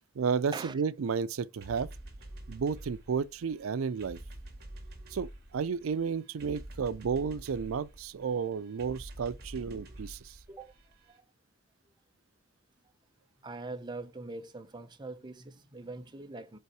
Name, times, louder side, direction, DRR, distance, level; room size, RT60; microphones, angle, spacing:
voice 1, 0.2-1.9 2.5-4.2 5.1-10.4, right 6 dB, 85° right, 0.4 m, -32 dB
sound 1, 1.6-11.2, right 1 dB, 50° right, 1.9 m, -48 dB
voice 2, 13.4-16.6, right 3 dB, 20° right, 0.7 m, -42 dB
5.5 x 4.0 x 4.7 m
head